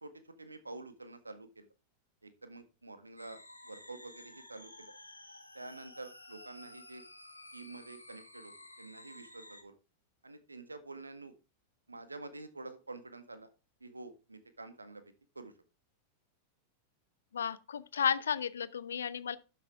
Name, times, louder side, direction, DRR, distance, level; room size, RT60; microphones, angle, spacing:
voice 1, 0.0-1.7 2.2-3.4 3.6-5.0 5.5-7.0 7.5-8.5 8.8-9.8 10.2-11.3 11.9-13.5 13.8-15.0 15.3-15.5, right 2 dB, 80° right, 1.7 m, -48 dB
sound 1, 3.2-9.6, left 1 dB, 85° left, 1.6 m, -53 dB
voice 2, 17.3-19.4, left 7 dB, 65° left, 0.7 m, -33 dB
12.5 x 7.6 x 3.6 m
figure-of-eight pair, 90°, 0 cm